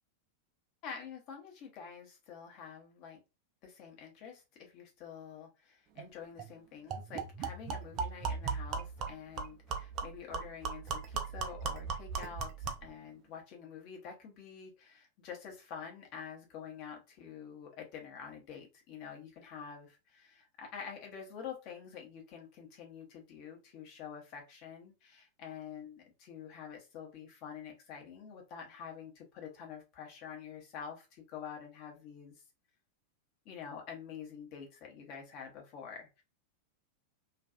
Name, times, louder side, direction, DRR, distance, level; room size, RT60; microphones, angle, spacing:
voice 1, 0.8-3.2 3.6-32.3 33.4-36.2, left 7 dB, 40° left, 1 dB, 0.9 m, -47 dB
sound 1, 6.0-6.1 6.4-6.5 6.9-12.9, right 5 dB, 35° right, 0.4 m, -38 dB
2.5 x 2.3 x 2.4 m, 0.28 s
figure-of-eight pair, 90°, 0 cm